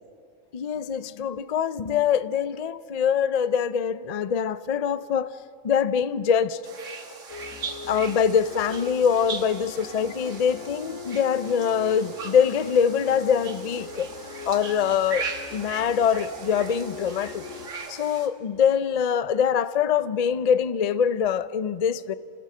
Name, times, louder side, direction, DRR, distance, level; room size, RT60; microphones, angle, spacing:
voice 1, 0.5-5.3 5.6-6.6 7.9-14.1 14.5-15.3 15.5-17.4 17.9-22.1, left 7 dB, 55° left, 14 dB, 0.4 m, -24 dB
sound 1, 6.6-18.3, right 4 dB, 70° right, 1.8 m, -39 dB
sound 2, 7.3-17.7, left 6 dB, 80° left, 2.0 m, -42 dB
28.0 x 16.0 x 6.7 m, 2.3 s
omnidirectional pair, 1.4 m